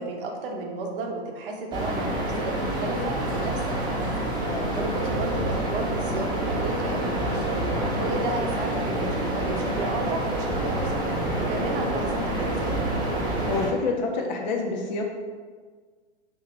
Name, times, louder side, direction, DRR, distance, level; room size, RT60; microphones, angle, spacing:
voice 1, 0.0-4.0 4.4-7.6 8.0-11.0 11.4-12.7, right 2 dB, 50° right, 1 dB, 0.7 m, -33 dB
sound 1, 1.7-13.7, right 1 dB, 15° right, 0.6 m, -27 dB
voice 2, 13.5-15.0, left 3 dB, 40° left, 1 dB, 0.5 m, -28 dB
2.8 x 2.6 x 4.3 m, 1.5 s
hypercardioid pair, 125°, 34 cm